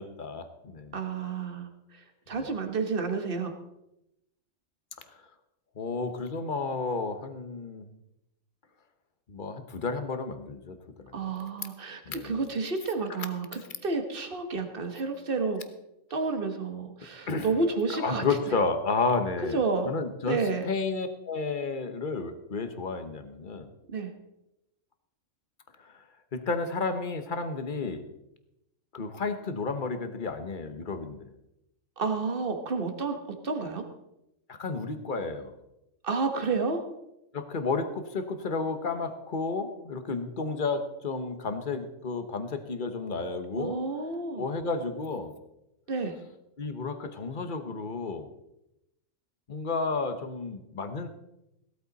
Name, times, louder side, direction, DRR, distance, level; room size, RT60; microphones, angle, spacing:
voice 1, 0.0-1.0 2.3-2.5 5.8-7.9 9.3-11.1 12.1-12.4 17.3-17.5 17.9-19.6 19.8-23.7 25.8-25.9 26.3-28.0 28.9-31.3 34.5-35.5 37.3-43.8 44.4-45.3 46.6-48.3 49.5-51.1, left 4 dB, 40° left, 8 dB, 1.2 m, -32 dB
voice 2, 0.9-1.7 2.3-3.5 11.1-15.6 16.1-18.2 19.5-19.9 20.3-20.7 23.9-24.1 32.0-33.2 33.4-33.8 36.0-36.8 43.6-44.5 45.9-46.1, right 4 dB, 45° right, 6 dB, 1.6 m, -30 dB
17.0 x 13.0 x 4.1 m, 0.88 s
omnidirectional pair, 1.3 m